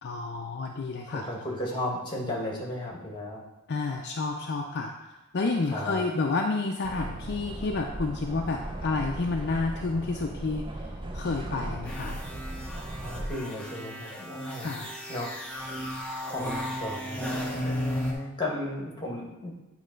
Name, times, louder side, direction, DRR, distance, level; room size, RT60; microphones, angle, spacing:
voice 1, 0.0-1.2 3.7-10.9 11.1-12.2 14.6-14.9, left 3 dB, 50° left, 1 dB, 0.5 m, -30 dB
voice 2, 1.1-3.4 5.7-6.3 11.6-11.7 13.0-14.7 15.1-15.7 16.3-19.5, left 1 dB, 20° left, -1 dB, 1.5 m, -35 dB
sound 1, 6.8-13.3, right 1 dB, 20° right, 0.5 m, -37 dB
sound 2, 11.9-18.1, equal, 5° left, 0.8 m, -35 dB
8.6 x 3.3 x 5.1 m, 1.0 s
head